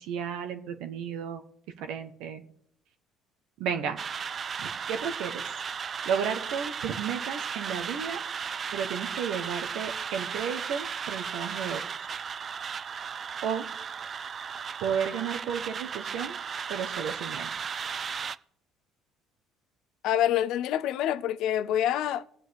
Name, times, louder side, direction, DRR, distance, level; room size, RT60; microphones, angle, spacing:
voice 1, 0.0-1.4 1.8-2.4 3.6-4.0 4.6-5.4 6.0-8.2 8.7-11.8 13.4-13.7 14.8-16.4 16.7-17.5, right 7 dB, 75° right, 1.2 m, -33 dB
sound 1, 4.0-18.4, right 6 dB, 40° right, 0.4 m, -35 dB
voice 2, 20.0-22.2, left 11 dB, 70° left, 0.5 m, -26 dB
21.0 x 7.6 x 3.4 m
supercardioid pair, 75°, 0 cm